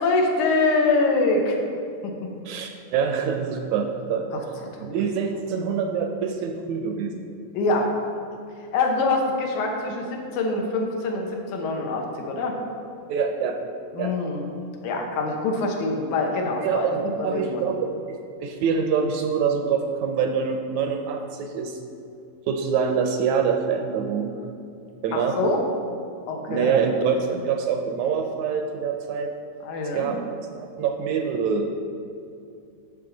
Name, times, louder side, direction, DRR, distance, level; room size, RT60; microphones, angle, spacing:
voice 1, 0.0-1.6 2.0-2.1 4.3-4.4 4.7-4.8 7.5-7.9 8.7-12.6 13.9-14.4 14.8-17.7 25.1-25.6 26.3-26.8 29.6-30.2, left 3 dB, 80° left, 1 dB, 2.4 m, -24 dB
voice 2, 2.5-4.3 4.8-7.2 13.1-13.6 14.0-14.1 16.6-16.9 17.2-17.9 18.4-21.8 22.5-24.3 25.0-25.4 26.5-29.3 29.9-30.2 30.5-31.7, right 6 dB, 80° right, 4 dB, 1.8 m, -25 dB
10.0 x 6.5 x 3.9 m, 2.5 s
omnidirectional pair, 3.5 m